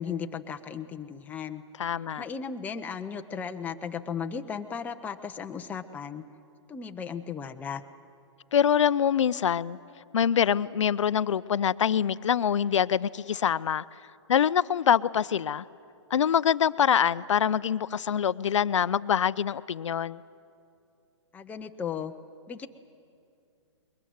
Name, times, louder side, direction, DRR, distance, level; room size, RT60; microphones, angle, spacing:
voice 1, 0.0-1.6 2.2-6.2 6.7-7.8 21.3-22.1 22.5-22.7, left 6 dB, 10° left, 5 dB, 0.7 m, -35 dB
voice 2, 1.8-2.2 8.5-9.8 10.1-13.8 14.3-15.6 16.1-20.2, left 8 dB, 75° left, 17 dB, 0.5 m, -25 dB
21.5 x 19.5 x 9.5 m, 2.5 s
hypercardioid pair, 130°, 16 cm